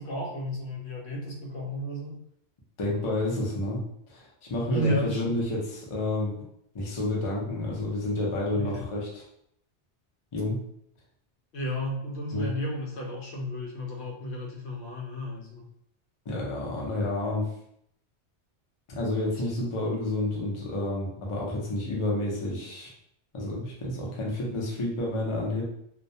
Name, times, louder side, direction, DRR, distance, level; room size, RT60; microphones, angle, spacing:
voice 1, 0.0-2.2 4.7-5.4 8.5-8.8 11.5-15.6, equal, 70° left, -1 dB, 0.8 m, -33 dB
voice 2, 2.8-3.8 4.1-6.4 6.7-9.2 10.3-10.6 12.3-12.5 16.3-17.5 18.9-22.9 23.3-25.6, left 1 dB, 35° left, -4 dB, 0.5 m, -30 dB
2.3 x 2.1 x 2.6 m, 0.71 s
omnidirectional pair, 1.2 m